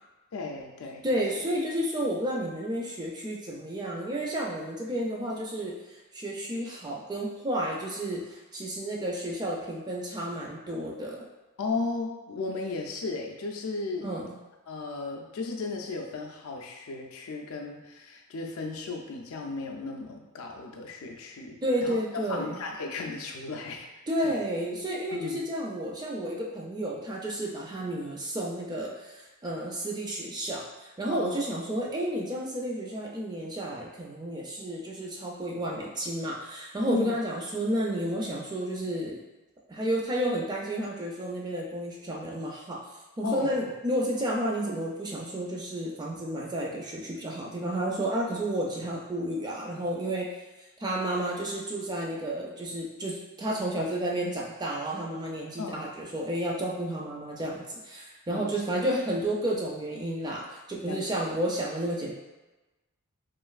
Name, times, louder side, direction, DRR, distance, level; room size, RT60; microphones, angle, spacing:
voice 1, 0.3-1.1 11.6-14.1 14.7-22.0 22.3-23.9 24.2-24.3 25.1-25.4 31.1-31.4 36.9-37.1 43.2-43.5 55.6-55.8 58.3-58.5 60.9-61.2, left 3 dB, 65° left, 1 dB, 0.4 m, -35 dB
voice 2, 1.0-5.7 6.1-11.2 14.0-14.3 21.6-22.6 24.1-39.2 39.7-42.8 43.2-50.3 50.8-62.1, right 1 dB, 20° right, -3 dB, 0.4 m, -31 dB
3.0 x 2.5 x 2.3 m, 1.1 s
head